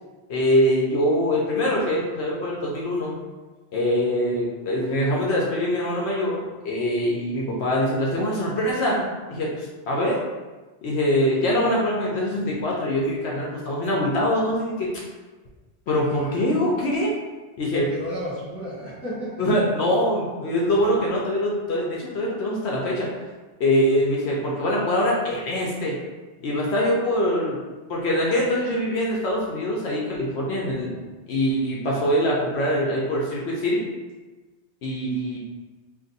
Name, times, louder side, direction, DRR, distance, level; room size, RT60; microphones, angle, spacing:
voice 1, 0.3-3.2 3.7-9.0 9.3-10.1 10.8-14.9 15.9-17.1 17.6-17.9 19.4-23.1 23.6-26.0 26.4-27.6 27.9-31.0 31.3-33.8 34.8-35.4, equal, 70° left, -3 dB, 0.9 m, -23 dB
voice 2, 16.0-16.4 17.6-19.5, equal, 15° left, -9 dB, 1.0 m, -33 dB
2.5 x 2.5 x 3.9 m, 1.2 s
omnidirectional pair, 1.2 m